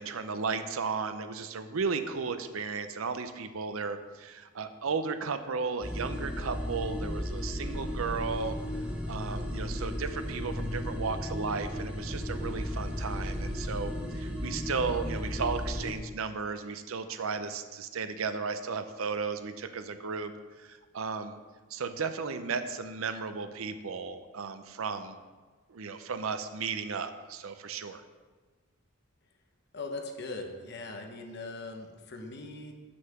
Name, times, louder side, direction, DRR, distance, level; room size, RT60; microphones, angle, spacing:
voice 1, 0.0-8.6 9.1-20.3 20.6-21.3 21.7-25.2 25.7-28.0, right 5 dB, 80° right, 10 dB, 0.6 m, -34 dB
sound 1, 5.8-15.9, left 1 dB, 5° right, 0.8 m, -35 dB
voice 2, 29.7-32.7, left 3 dB, 55° left, 4 dB, 0.9 m, -40 dB
6.3 x 5.7 x 5.8 m, 1.3 s
head